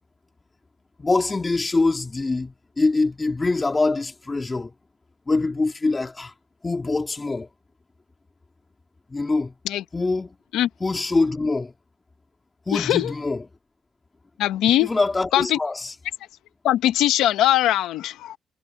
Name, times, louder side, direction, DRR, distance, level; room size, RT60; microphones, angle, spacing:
voice 1, 1.0-4.7 5.3-6.3 6.6-7.5 9.1-9.5 9.9-10.4 10.8-11.7 12.7-13.5 14.8-15.9, left 3 dB, 25° left, 2.4 m, -24 dB
voice 2, 12.7-13.1 14.4-14.9 15.3-15.6 16.6-18.4, left 13 dB, 85° left, 0.7 m, -21 dB
cardioid pair, 90°, 0 cm